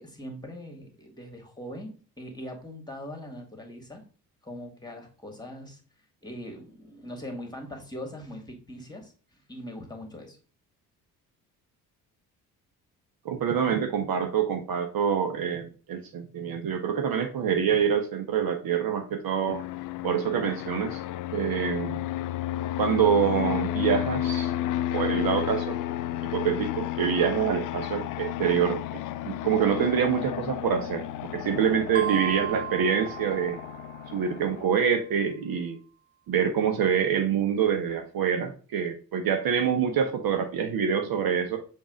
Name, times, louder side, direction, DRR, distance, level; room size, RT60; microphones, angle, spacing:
voice 1, 0.0-4.0 4.4-5.8 6.2-10.4, equal, 10° left, 3 dB, 2.2 m, -41 dB
voice 2, 13.2-19.6 20.0-21.0 21.3-22.0 22.8-24.5 24.9-25.8 26.3-31.0 31.3-33.6 34.1-35.8 36.3-41.6, right 7 dB, 45° right, 5 dB, 1.0 m, -26 dB
Fixed-wing aircraft airplane, 19.5-34.7, left 12 dB, 45° left, 0.5 m, -32 dB
sound 1, 31.9-34.4, right 10 dB, 25° right, 0.4 m, -35 dB
7.1 x 2.7 x 5.1 m, 0.39 s
figure-of-eight pair, 45°, 48 cm